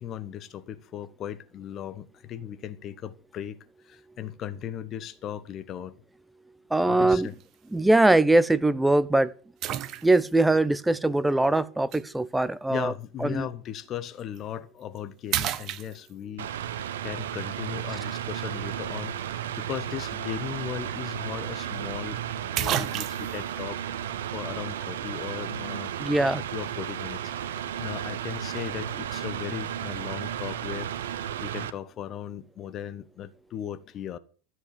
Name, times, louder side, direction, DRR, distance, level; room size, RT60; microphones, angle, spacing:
voice 1, 0.0-3.6 3.8-6.0 6.9-7.3 12.7-16.5 17.0-22.2 22.6-24.1 24.3-25.9 26.5-30.9 31.4-34.2, left 10 dB, 35° left, 1.2 m, -37 dB
voice 2, 6.7-7.3 7.7-9.3 10.0-12.9 13.2-13.5 26.0-26.4, right 2 dB, 5° right, 0.7 m, -22 dB
sound 1, 7.1-7.4 8.1-8.2 9.6-10.4 11.9-12.0 14.2-14.4 14.8-15.0 15.3-16.4 20.5-20.6 20.9-21.0 22.1-22.2 22.6-23.4, right 12 dB, 40° right, 1.0 m, -31 dB
Mechanical fan, 16.4-31.7, right 10 dB, 70° right, 1.0 m, -34 dB
13.5 x 8.0 x 6.8 m
figure-of-eight pair, 85°, 0 cm